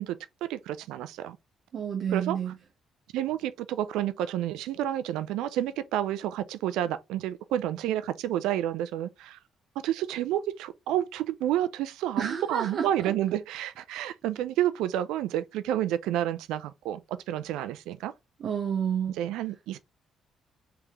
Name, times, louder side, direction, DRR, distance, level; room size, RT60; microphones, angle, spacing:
voice 1, 0.0-1.4 2.1-2.4 3.1-9.4 9.8-18.1 19.2-19.8, right 12 dB, 80° right, 0.3 m, -30 dB
voice 2, 1.7-2.6 12.2-13.1 18.4-19.2, right 8 dB, 60° right, 0.7 m, -30 dB
3.4 x 3.2 x 3.0 m
supercardioid pair, 55°, 0 cm